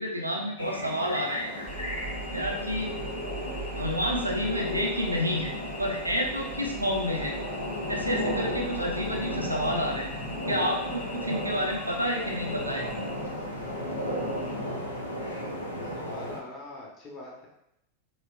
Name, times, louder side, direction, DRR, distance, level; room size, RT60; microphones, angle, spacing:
voice 1, 0.0-1.5 2.3-2.9 3.8-5.5 5.8-7.3 7.9-10.1 10.5-12.9, equal, 85° right, 0 dB, 0.7 m, -29 dB
sound 1, 0.6-16.4, left 1 dB, 75° left, 0.8 m, -34 dB
sound 2, 1.7-14.6, right 1 dB, 5° right, 0.5 m, -42 dB
voice 2, 15.8-17.5, left 2 dB, 25° left, -3 dB, 1.2 m, -43 dB
6.2 x 2.9 x 2.5 m, 0.80 s
figure-of-eight pair, 90°, 0 cm